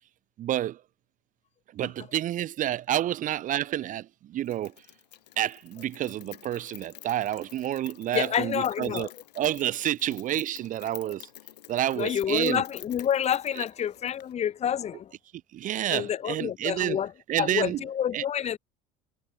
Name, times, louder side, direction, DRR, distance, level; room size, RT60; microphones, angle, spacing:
voice 1, 0.4-0.8 1.7-4.7 5.4-9.1 9.4-11.3 11.7-12.6 13.6-13.7 15.5-17.0 17.3-17.8 18.1-18.2, right 12 dB, 40° right, 0.5 m, -29 dB
Rain, 4.4-14.3, left 13 dB, 80° left, 1.4 m, -48 dB
voice 2, 8.1-9.1 12.0-15.1 15.9-17.1 17.4-18.6, left 9 dB, 35° left, 0.7 m, -28 dB
hypercardioid pair, 65°, 20 cm